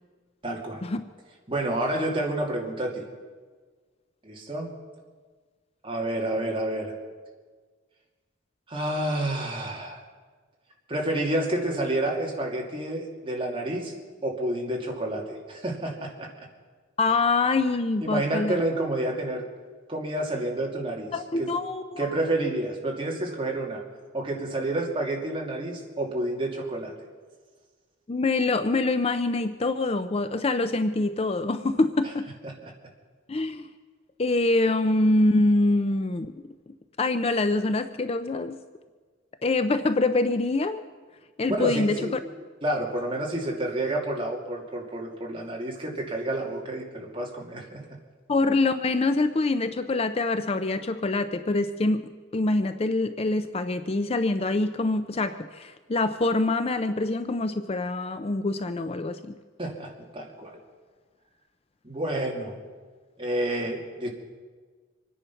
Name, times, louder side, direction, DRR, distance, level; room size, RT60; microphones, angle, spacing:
voice 1, 0.4-0.9 1.5-3.1 4.2-4.7 5.8-6.9 8.7-10.0 10.9-14.0 14.2-16.5 18.0-19.5 19.9-21.5 22.0-23.8 24.1-26.9 32.4-32.7 41.5-42.2 42.6-47.9 59.6-60.6 61.8-62.5 63.2-64.1, right 1 dB, 25° right, -1 dB, 2.4 m, -29 dB
voice 2, 17.0-18.6 21.1-21.8 28.1-32.3 33.3-33.7 34.2-36.5 37.0-38.6 39.4-40.8 41.4-42.0 48.3-59.4, left 2 dB, 30° left, 10 dB, 0.5 m, -25 dB
25.0 x 10.0 x 5.8 m, 1.5 s
head